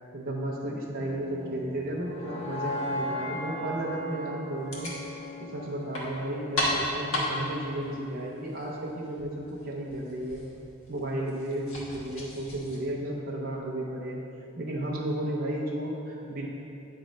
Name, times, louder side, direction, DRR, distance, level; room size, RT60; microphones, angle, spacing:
voice 1, 0.1-4.9 5.4-10.4 10.9-14.2 14.6-16.5, right 1 dB, 45° right, -4 dB, 0.6 m, -33 dB
sound 1, 0.9-7.0, left 1 dB, 25° left, 0.6 m, -38 dB
sound 2, 4.6-12.8, left 1 dB, 65° left, 1.2 m, -36 dB
8.6 x 3.1 x 5.1 m, 2.8 s
head